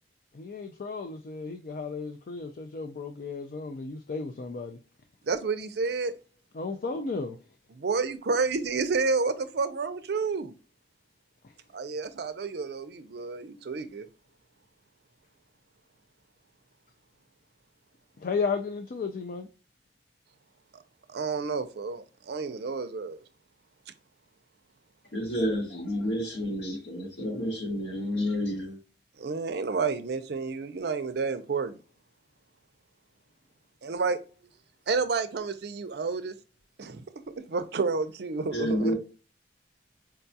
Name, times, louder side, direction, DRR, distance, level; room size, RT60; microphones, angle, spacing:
voice 1, 0.3-4.8 6.5-7.4 18.2-19.5, left 4 dB, 50° left, 0.4 m, -34 dB
voice 2, 5.2-6.1 7.8-10.5 11.7-14.1 21.1-23.2 29.2-31.8 33.8-34.2 34.9-36.3 36.8-37.0 37.5-38.9, right 4 dB, 60° right, 0.5 m, -30 dB
voice 3, 25.1-28.8 38.5-38.9, equal, 70° left, 1.7 m, -30 dB
4.6 x 2.3 x 2.6 m
head